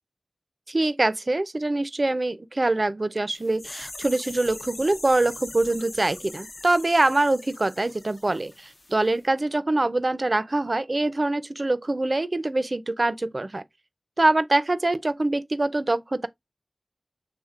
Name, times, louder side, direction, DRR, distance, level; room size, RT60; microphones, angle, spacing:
voice 1, 0.7-13.6 14.2-16.3, right 2 dB, 50° right, 0.4 m, -24 dB
sound 1, 3.3-8.9 9.2-9.3, left 2 dB, 55° left, 0.6 m, -42 dB
6.4 x 3.5 x 2.4 m
wide cardioid pair, 65°, 0 cm